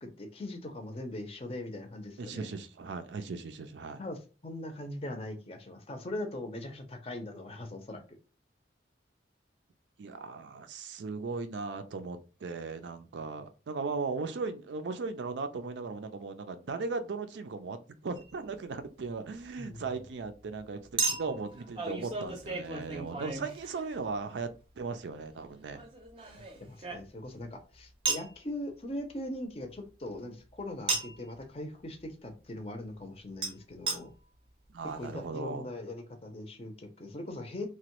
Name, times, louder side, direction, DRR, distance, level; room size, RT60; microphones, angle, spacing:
voice 1, 0.0-2.5 4.0-8.2 19.6-19.8 26.3-34.1 35.0-37.7, left 1 dB, 30° left, 0.5 m, -40 dB
voice 2, 2.2-4.0 10.0-25.8 34.7-35.7, right 4 dB, 80° right, 0.4 m, -37 dB
Chink clink, 18.2-18.3 21.0-24.2 25.7-27.4 28.1-28.3 30.9-31.3 33.4-33.5 33.9-34.0 34.6-34.7 34.9-35.0, right 3 dB, 30° right, 0.5 m, -34 dB
3.0 x 2.2 x 2.9 m
head